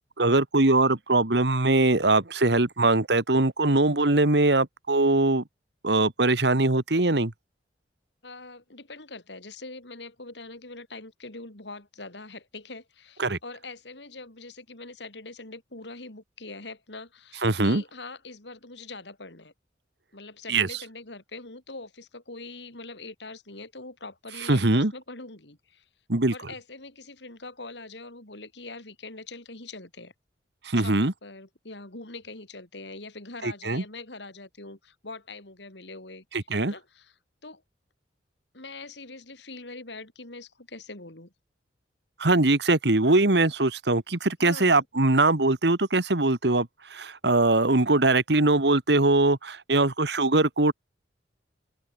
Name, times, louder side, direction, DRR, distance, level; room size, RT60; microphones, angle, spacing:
voice 1, 0.2-5.4 5.8-7.3 13.2-13.4 17.4-17.8 20.5-20.8 24.5-24.9 26.1-26.3 30.6-31.1 33.4-33.8 36.3-36.7 42.2-50.7, right 2 dB, 65° right, 1.7 m, -22 dB
voice 2, 8.2-19.5 20.1-25.8 26.3-30.1 30.8-36.2 36.7-37.1 37.4-37.6 38.5-41.3 44.4-44.8, left 3 dB, 70° left, 4.0 m, -43 dB
open air
head